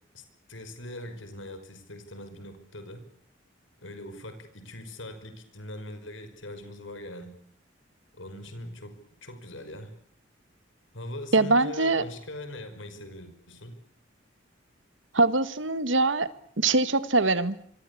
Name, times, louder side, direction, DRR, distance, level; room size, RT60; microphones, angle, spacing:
voice 1, 0.5-3.0 3.8-7.3 8.2-9.9 10.9-13.8, left 1 dB, 85° left, 9 dB, 5.6 m, -41 dB
voice 2, 11.3-12.0 15.1-16.3 16.6-17.5, right 3 dB, 80° right, 14 dB, 1.7 m, -23 dB
26.5 x 22.5 x 8.6 m, 0.65 s
head